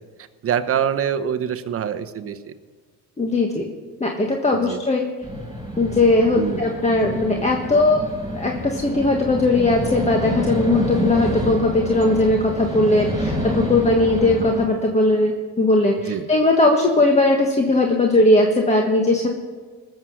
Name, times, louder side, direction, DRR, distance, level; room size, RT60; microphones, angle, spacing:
voice 1, 0.4-2.5 4.5-4.8 6.4-6.6 16.1-16.3, right 8 dB, 40° right, 9 dB, 0.9 m, -25 dB
voice 2, 3.2-3.6 4.0-5.1 5.8-8.1 8.3-19.3, left 2 dB, 20° left, 1 dB, 1.4 m, -19 dB
sound 1, 5.2-14.7, equal, 10° right, 5.6 m, -27 dB
19.5 x 7.7 x 6.4 m, 1.5 s
cardioid pair, 115°, 35 cm